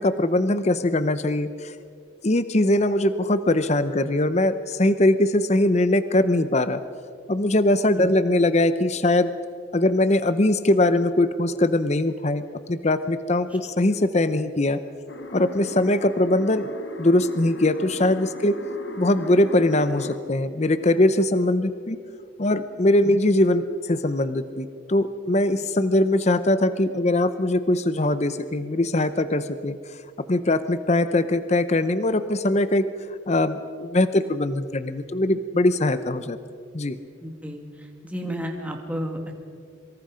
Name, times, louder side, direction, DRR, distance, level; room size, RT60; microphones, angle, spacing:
voice 1, 0.0-1.7 2.2-6.8 7.3-9.3 9.7-12.4 12.7-14.8 15.3-16.7 17.0-18.5 19.0-22.0 22.4-29.8 30.3-32.9 33.3-36.4 36.7-37.0, left 1 dB, 35° left, 12 dB, 0.7 m, -21 dB
sound 1, 15.1-20.2, left 1 dB, 60° left, 1.8 m, -37 dB
voice 2, 37.2-37.6 38.0-39.3, equal, 5° right, 1 dB, 2.4 m, -31 dB
26.0 x 24.5 x 5.1 m, 2.3 s
head